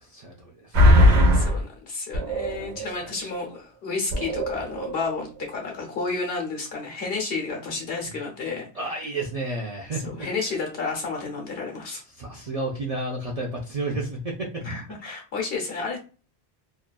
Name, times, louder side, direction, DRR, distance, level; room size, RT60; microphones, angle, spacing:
voice 1, 0.0-0.8 2.7-3.3 8.7-10.3 12.1-14.6, right 2 dB, 50° right, -1 dB, 0.4 m, -32 dB
sound 1, 0.7-1.6 2.1-3.0 3.3-3.5 4.1-5.0 5.4-5.5, left 1 dB, 85° right, 1.0 m, -20 dB
voice 2, 1.0-9.0 10.1-12.0 14.6-16.0, left 4 dB, 65° left, 1 dB, 1.0 m, -31 dB
2.6 x 2.4 x 2.2 m, 0.35 s
omnidirectional pair, 1.1 m